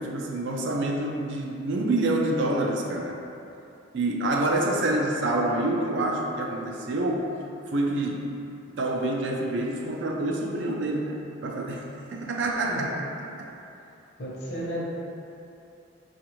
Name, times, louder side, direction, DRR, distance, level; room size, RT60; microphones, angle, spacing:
voice 1, 0.0-3.2 3.9-7.3 7.7-8.3 8.6-12.9 13.4-13.5, right 2 dB, 60° right, 0 dB, 0.4 m, -27 dB
voice 2, 14.2-14.9, equal, 55° left, -6 dB, 0.8 m, -33 dB
4.8 x 2.4 x 3.0 m, 2.8 s
head